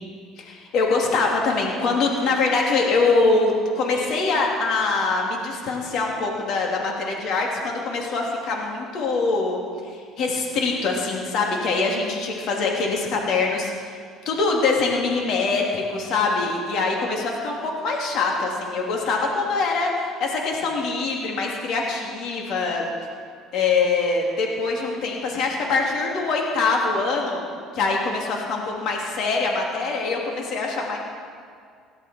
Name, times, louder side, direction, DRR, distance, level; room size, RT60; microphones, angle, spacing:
voice 1, 0.7-9.6 10.2-13.7 14.2-19.9 20.2-22.8 23.5-27.4 27.7-31.0, left 3 dB, 60° left, -1 dB, 3.0 m, -23 dB
17.5 x 13.0 x 4.6 m, 2.2 s
supercardioid pair, 100°, 0 cm